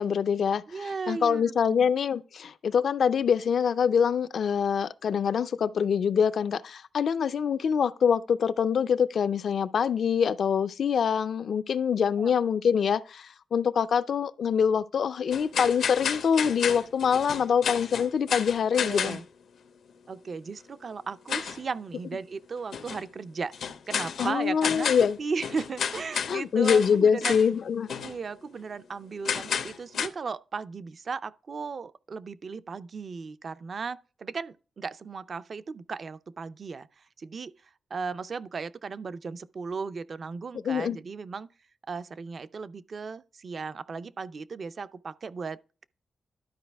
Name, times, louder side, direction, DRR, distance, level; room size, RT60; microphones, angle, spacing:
voice 1, 0.0-19.2 24.2-25.2 26.3-27.9 40.6-41.0, left 7 dB, 65° left, 0.4 m, -25 dB
voice 2, 0.7-1.9 12.2-12.3 18.8-19.2 20.1-24.9 25.2-27.4 28.0-41.5 41.9-45.8, right 5 dB, 45° right, 0.4 m, -36 dB
sound 1, 15.3-19.2 21.3-21.6 22.7-23.0 23.5-25.2 25.4-26.4 26.6-27.0 27.2-27.5 27.9-28.2 29.3-30.1, left 7 dB, 85° left, 0.8 m, -31 dB
12.0 x 4.8 x 3.4 m
wide cardioid pair, 140°, 0 cm